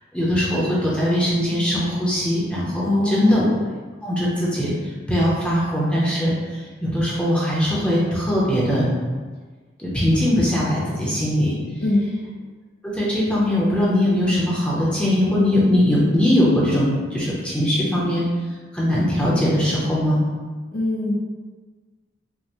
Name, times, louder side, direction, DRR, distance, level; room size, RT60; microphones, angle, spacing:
voice 1, 0.1-3.5 4.0-4.7 5.1-8.9 9.8-11.5 12.9-18.3 18.7-20.2, left 1 dB, 5° left, -7 dB, 0.7 m, -20 dB
voice 2, 2.8-3.4 11.8-12.1 20.7-21.1, left 1 dB, 55° left, -5 dB, 0.8 m, -22 dB
5.2 x 2.1 x 3.0 m, 1.4 s
head